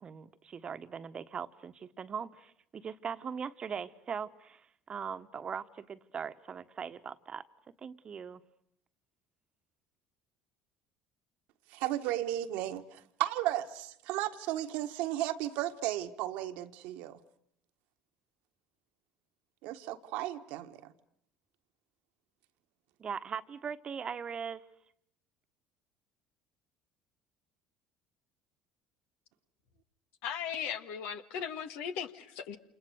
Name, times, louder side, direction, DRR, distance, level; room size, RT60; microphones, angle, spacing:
voice 1, 0.0-7.5 7.8-8.4 23.0-24.6, right 6 dB, 35° right, 11 dB, 1.4 m, -40 dB
voice 2, 11.7-17.2 19.6-20.9, right 14 dB, 65° right, 8 dB, 1.5 m, -34 dB
voice 3, 30.2-32.6, left 8 dB, 65° left, 8 dB, 1.8 m, -37 dB
29.0 x 28.5 x 6.6 m, 0.73 s
hypercardioid pair, 65°, 3 cm